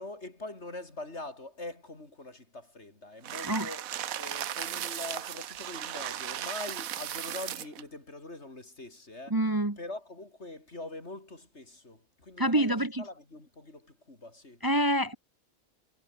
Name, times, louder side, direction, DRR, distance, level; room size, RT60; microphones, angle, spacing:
voice 1, 0.0-9.4 9.8-14.6, left 2 dB, 50° left, 4.7 m, -43 dB
sound 1, 3.2-7.8, right 11 dB, 80° right, 1.3 m, -36 dB
voice 2, 9.3-9.8 12.4-13.0 14.6-15.2, right 1 dB, 15° right, 1.5 m, -26 dB
omnidirectional pair, 1.4 m